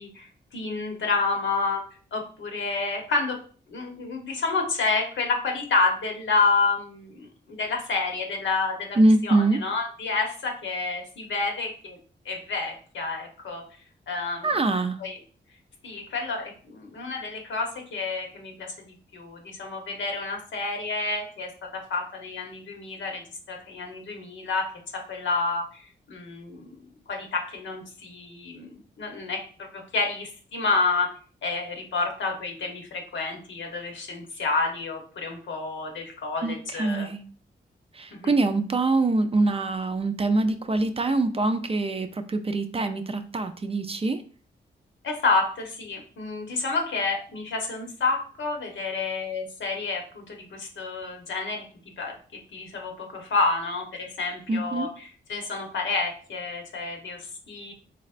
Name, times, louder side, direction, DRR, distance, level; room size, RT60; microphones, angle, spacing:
voice 1, 0.0-1.8 2.1-3.4 3.7-9.0 9.2-12.0 12.2-13.6 14.1-14.5 15.0-15.2 15.8-23.2 23.5-31.1 31.4-37.1 38.2-38.3 45.0-51.7 52.0-57.7, left 3 dB, 80° left, 2 dB, 1.0 m, -29 dB
voice 2, 9.0-9.6 14.4-15.0 36.4-37.2 37.9-44.2 54.5-54.9, right 2 dB, 30° right, 9 dB, 0.4 m, -24 dB
4.0 x 3.1 x 2.5 m, 0.42 s
cardioid pair, 55°, 19 cm